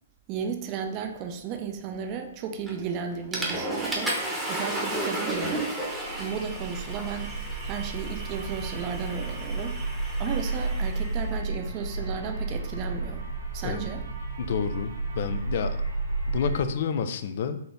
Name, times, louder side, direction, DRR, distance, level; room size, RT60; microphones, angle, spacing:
voice 1, 0.3-4.1 4.5-5.7 6.2-7.4 7.6-9.7 10.2-13.3 13.5-14.0, right 7 dB, 35° right, 5 dB, 0.5 m, -34 dB
Water / Toilet flush, 2.7-2.9 3.3-11.2, right 1 dB, 5° right, 0.9 m, -33 dB
sound 1, 5.9-16.6, right 3 dB, 75° right, 1.6 m, -32 dB
voice 2, 14.4-15.8 16.3-17.6, left 6 dB, 55° left, 10 dB, 0.4 m, -29 dB
4.1 x 2.8 x 3.5 m, 0.73 s
hypercardioid pair, 130°, 0 cm